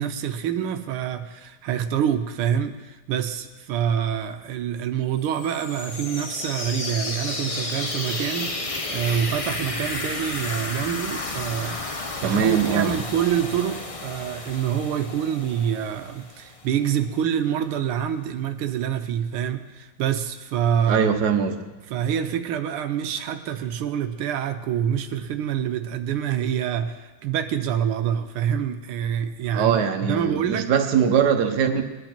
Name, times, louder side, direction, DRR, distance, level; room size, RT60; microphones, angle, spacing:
voice 1, 0.0-11.8 12.2-21.1 21.9-30.7, right 9 dB, 90° right, 8 dB, 1.7 m, -26 dB
sound 1, 5.2-16.9, left 2 dB, 55° left, 0.3 m, -32 dB
voice 2, 12.2-12.9 20.9-21.5 29.5-31.8, right 7 dB, 55° right, 5 dB, 1.5 m, -21 dB
20.5 x 10.5 x 4.4 m, 1.2 s
omnidirectional pair, 2.3 m